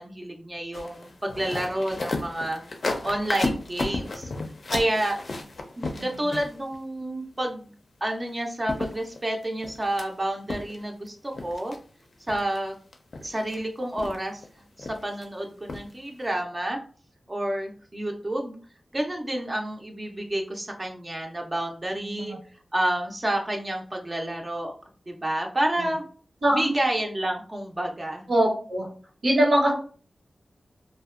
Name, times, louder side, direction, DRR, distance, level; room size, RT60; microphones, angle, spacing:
voice 1, 0.0-2.6 3.0-4.3 4.7-5.2 6.0-7.7 8.0-11.7 12.3-12.7 13.2-14.4 14.8-16.8 17.3-18.5 18.9-22.4 22.7-24.7 25.1-26.0 26.5-28.3, right 1 dB, 30° right, 1 dB, 0.4 m, -29 dB
sound 1, 0.7-6.8 8.3-8.4 8.7-10.1 10.5-11.1 11.3-11.8 12.3-12.6 12.9-13.6 14.0-14.5 14.8-15.3 15.7-15.9 16.2-16.3, left 2 dB, 60° left, 0.4 m, -33 dB
voice 2, 5.8-6.3 22.0-22.4 26.4-26.8 28.3-28.9 29.2-29.7, right 1 dB, 85° right, -4 dB, 0.9 m, -23 dB
2.6 x 2.1 x 2.4 m, 0.41 s
wide cardioid pair, 85°, 0 cm